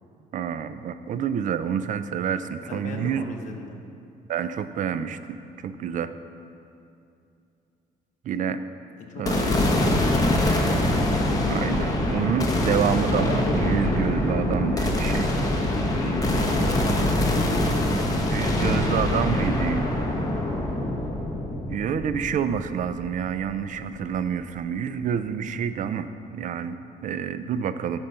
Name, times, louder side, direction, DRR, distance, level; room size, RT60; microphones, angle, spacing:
voice 1, 0.3-3.2 4.3-6.1 8.2-8.6 9.2-9.6 11.5-15.3 18.3-20.0 20.4-20.6 21.7-28.0, right 8 dB, 50° right, 12 dB, 0.4 m, -28 dB
voice 2, 2.7-3.8 9.0-9.6 15.9-17.7, left 3 dB, 45° left, 1 dB, 0.9 m, -37 dB
sound 1, 9.3-23.6, left 1 dB, 20° left, 1.1 m, -24 dB
10.0 x 5.3 x 5.5 m, 2.6 s
cardioid pair, 110°, 17 cm